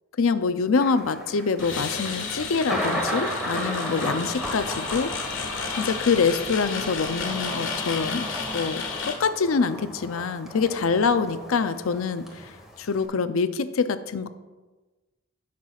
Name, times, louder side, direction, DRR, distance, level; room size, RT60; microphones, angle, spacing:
voice 1, 0.2-5.1 5.8-8.2 8.5-12.5 12.8-14.3, left 5 dB, 75° left, 11 dB, 0.5 m, -25 dB
Thunder, 0.8-13.1, equal, ahead, 1.3 m, -35 dB
sound 1, 1.6-9.1, left 5 dB, 60° left, 1.6 m, -32 dB
16.0 x 5.9 x 2.4 m, 1.2 s
head